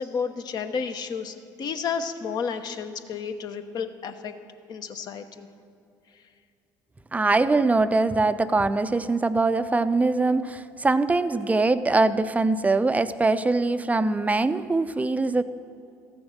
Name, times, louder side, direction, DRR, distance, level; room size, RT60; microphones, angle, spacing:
voice 1, 0.0-4.3 4.7-5.5, left 6 dB, 50° left, 8 dB, 0.9 m, -31 dB
voice 2, 7.1-15.4, right 3 dB, 15° right, 12 dB, 0.5 m, -22 dB
14.0 x 7.1 x 6.4 m, 2.5 s
hypercardioid pair, 65°, 9 cm